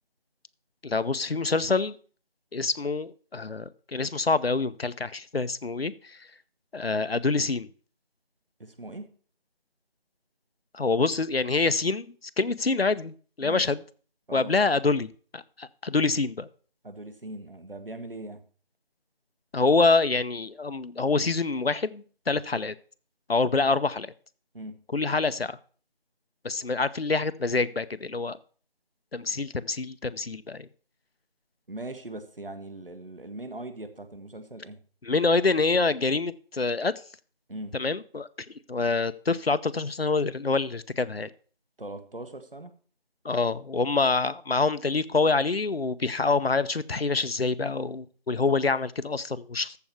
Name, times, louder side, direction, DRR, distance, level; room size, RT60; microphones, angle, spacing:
voice 1, 0.8-2.0 2.5-6.2 6.7-7.7 10.7-12.1 12.4-13.8 14.3-16.5 19.5-22.7 23.3-24.1 24.9-25.6 26.4-28.4 29.1-30.7 35.0-36.9 37.7-38.3 38.7-41.3 43.2-49.8, left 3 dB, 80° left, 14 dB, 0.8 m, -26 dB
voice 2, 8.6-9.1 13.4-13.6 14.3-14.5 16.8-18.4 24.5-24.8 31.7-34.8 37.5-37.8 41.8-42.7, right 1 dB, 65° right, 10 dB, 1.7 m, -40 dB
14.0 x 4.7 x 6.9 m, 0.43 s
figure-of-eight pair, 180°, 30 cm